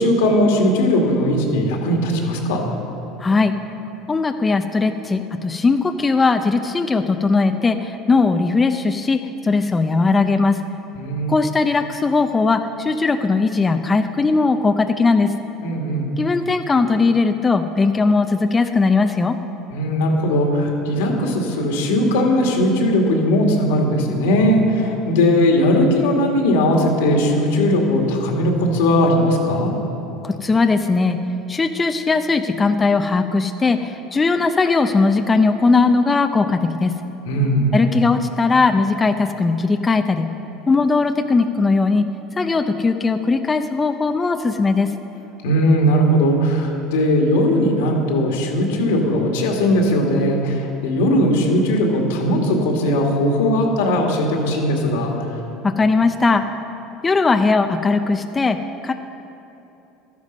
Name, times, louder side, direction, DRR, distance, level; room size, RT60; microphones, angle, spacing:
voice 1, 0.0-2.6 10.9-11.3 15.6-16.1 19.7-29.7 37.3-37.7 45.4-55.1, left 1 dB, 85° left, 1 dB, 2.1 m, -18 dB
voice 2, 3.2-3.5 4.1-10.6 11.3-15.3 16.2-19.4 30.2-31.2 31.5-37.0 37.7-40.3 40.7-42.0 42.4-44.9 55.6-56.4 57.0-58.9, left 4 dB, 20° left, 7 dB, 0.6 m, -18 dB
13.0 x 10.5 x 5.3 m, 2.9 s
supercardioid pair, 100°, 0 cm